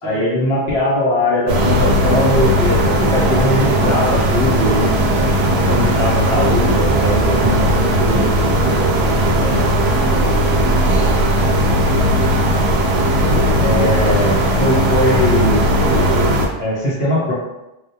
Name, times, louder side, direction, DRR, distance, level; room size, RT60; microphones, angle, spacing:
voice 1, 0.0-5.0 5.7-8.5 9.4-9.7 13.6-15.7 16.1-16.2 16.6-17.3, left 1 dB, 80° left, -7 dB, 1.1 m, -20 dB
sound 1, 1.5-16.5, right 1 dB, 85° right, 0.9 m, -16 dB
voice 2, 8.7-9.8 10.1-11.9, right 1 dB, 25° right, -4 dB, 0.7 m, -33 dB
3.2 x 2.3 x 2.7 m, 0.97 s
omnidirectional pair, 1.1 m